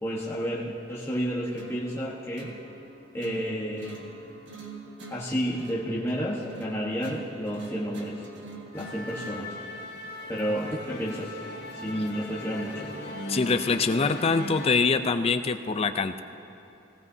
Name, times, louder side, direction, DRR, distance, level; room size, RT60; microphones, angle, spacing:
voice 1, 0.0-2.5 3.1-4.0 5.1-8.2 8.7-9.5 10.3-11.4 11.7-13.3, equal, 15° left, -6 dB, 1.2 m, -31 dB
sound 1, 1.6-9.6, right 3 dB, 70° right, 1.6 m, -45 dB
Musical instrument, 8.7-14.8, left 1 dB, 55° left, 1.6 m, -39 dB
voice 2, 13.3-16.2, left 4 dB, 30° left, 10 dB, 0.4 m, -24 dB
19.0 x 17.5 x 2.7 m, 2.9 s
head